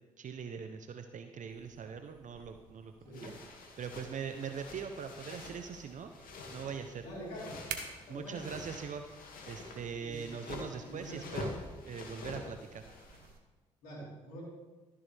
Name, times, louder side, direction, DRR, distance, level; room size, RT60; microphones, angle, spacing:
voice 1, 0.2-2.9 3.2-3.3 3.8-6.1 6.5-7.0 8.1-9.1 9.5-11.5 11.9-12.8, right 6 dB, 55° right, 7 dB, 0.9 m, -41 dB
sound 1, 1.5-13.4, right 7 dB, 80° right, 1.3 m, -52 dB
voice 2, 3.0-3.4 7.0-7.6 8.1-8.4 10.0-10.2 10.6-11.2 13.8-14.4, equal, 85° left, -5 dB, 4.1 m, -45 dB
sound 2, 3.1-13.3, left 3 dB, 65° left, 2.3 m, -47 dB
13.5 x 11.0 x 3.5 m, 1.2 s
hypercardioid pair, 45°, 16 cm